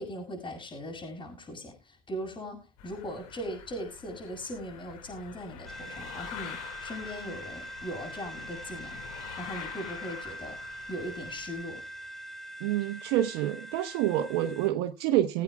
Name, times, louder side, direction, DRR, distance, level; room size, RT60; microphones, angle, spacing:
voice 1, 0.0-10.6 10.9-11.8, equal, 30° left, 6.9 m, -39 dB
sound 1, 2.8-11.6, left 8 dB, 90° left, 2.3 m, -45 dB
sound 2, 5.7-14.7, right 1 dB, ahead, 2.4 m, -43 dB
voice 2, 12.6-15.4, right 13 dB, 80° right, 1.1 m, -27 dB
22.0 x 8.8 x 2.4 m
supercardioid pair, 85°, 17 cm